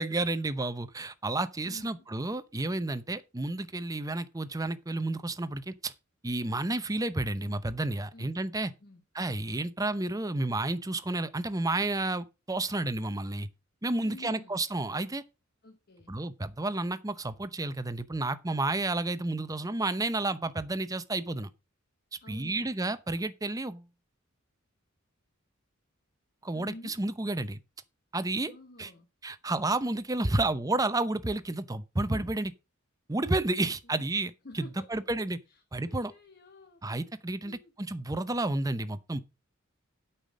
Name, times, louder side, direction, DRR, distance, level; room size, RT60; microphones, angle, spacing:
voice 1, 0.0-5.9 6.2-8.7 9.1-13.5 13.8-15.2 16.1-21.5 22.3-23.9 26.4-27.6 28.1-28.5 28.8-28.9 29.2-32.5 33.1-34.3 34.6-35.4 35.7-36.1 36.8-39.2, right 2 dB, 15° right, 0.7 m, -31 dB
voice 2, 1.6-2.1 8.1-8.3 8.8-9.0 14.0-14.6 15.6-16.1 22.2-22.7 26.5-27.0 28.4-29.1 32.1-32.4 33.6-34.1 34.4-34.9 35.5-36.8 37.4-37.7, left 2 dB, 50° left, 1.1 m, -50 dB
8.7 x 5.8 x 6.3 m
head